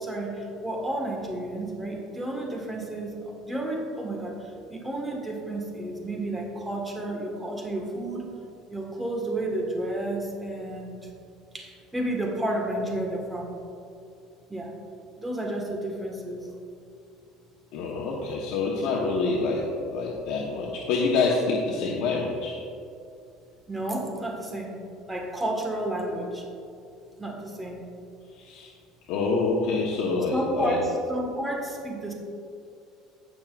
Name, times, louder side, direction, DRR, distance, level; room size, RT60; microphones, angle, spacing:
voice 1, 0.0-8.3 8.7-11.1 11.5-13.5 14.5-14.7 15.2-16.5 23.7-24.7 25.1-26.4 27.2-27.8 30.3-32.1, right 1 dB, 10° right, 0 dB, 1.6 m, -31 dB
voice 2, 17.7-22.6 28.4-28.7 29.1-30.8, left 3 dB, 65° left, -3 dB, 1.1 m, -26 dB
17.0 x 6.0 x 2.5 m, 2.5 s
cardioid pair, 135°, 0 cm